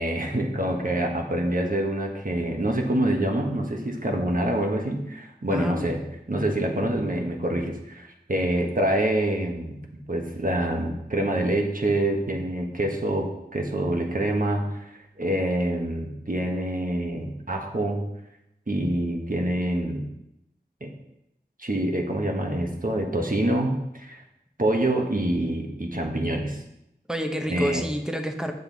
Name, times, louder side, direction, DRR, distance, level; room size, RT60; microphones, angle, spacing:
voice 1, 0.0-6.0 6.3-18.1 18.7-20.1 20.8-20.9 21.6-24.2 24.6-26.6 27.5-27.8, right 1 dB, 50° right, 2 dB, 1.4 m, -26 dB
voice 2, 5.5-5.9 27.1-28.5, equal, 5° right, 4 dB, 1.0 m, -29 dB
8.1 x 6.8 x 4.1 m, 0.84 s
wide cardioid pair, 45°, 18 cm